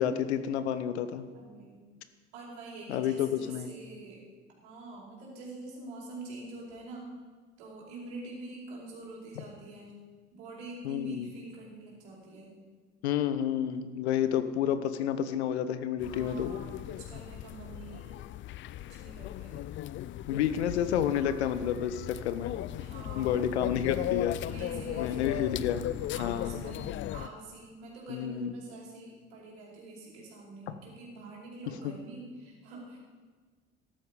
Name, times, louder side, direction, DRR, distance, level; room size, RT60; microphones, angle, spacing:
voice 1, 0.0-1.3 2.9-3.7 10.8-11.3 13.0-16.5 20.3-22.5 23.1-24.4 25.0-25.9 26.2-26.6 28.1-28.5 31.8-31.9, left 9 dB, 75° left, 12 dB, 1.0 m, -30 dB
voice 2, 1.3-1.8 2.3-4.2 4.6-7.1 7.6-9.9 10.3-12.5 16.1-18.1 18.8-19.6 22.8-23.4 24.4-25.5 26.1-33.0, right 2 dB, 70° right, -3 dB, 4.7 m, -45 dB
sound 1, 16.0-27.3, left 13 dB, 35° left, 0.4 m, -37 dB
14.0 x 12.0 x 5.1 m, 1.4 s
hypercardioid pair, 65°, 33 cm